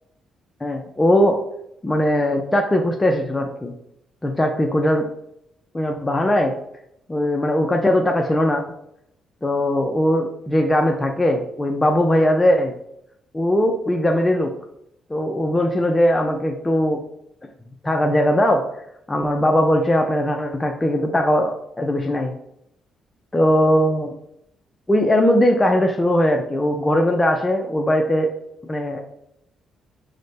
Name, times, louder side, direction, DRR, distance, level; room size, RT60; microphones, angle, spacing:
voice 1, 0.6-1.4 1.8-3.7 4.2-5.0 5.7-6.6 7.1-8.6 9.4-12.7 13.3-14.5 15.1-17.0 17.8-18.6 19.1-22.3 23.3-24.1 24.9-28.3 28.6-29.0, left 1 dB, 15° left, 2 dB, 0.4 m, -19 dB
4.9 x 2.1 x 4.0 m, 0.76 s
cardioid pair, 90°, 0 cm